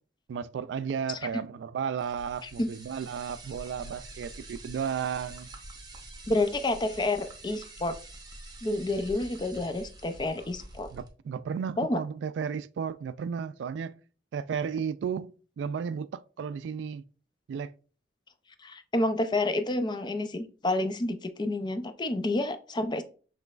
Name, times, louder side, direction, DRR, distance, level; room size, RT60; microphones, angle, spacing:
voice 1, 0.3-5.5 10.9-14.0 14.3-17.0 17.5-17.7, right 7 dB, 90° right, 0.3 m, -34 dB
sound 1, 2.0-11.1, right 2 dB, 25° right, 0.8 m, -46 dB
voice 2, 6.3-8.0 8.6-10.9 11.8-12.0 18.6-23.0, left 2 dB, 25° left, 0.4 m, -29 dB
5.9 x 3.2 x 2.4 m
head